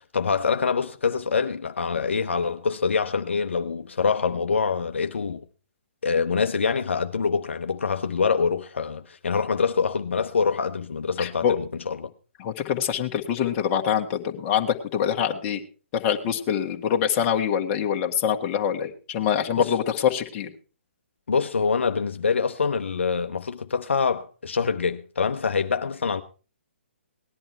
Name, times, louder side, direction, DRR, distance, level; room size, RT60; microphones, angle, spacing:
voice 1, 0.0-5.4 6.0-12.1 19.6-19.7 21.3-26.2, left 5 dB, 70° left, 0.8 m, -25 dB
voice 2, 11.2-11.6 12.4-15.6 15.9-20.5, left 8 dB, 30° left, 1.7 m, -25 dB
18.5 x 11.0 x 4.6 m
figure-of-eight pair, 135°, 7 cm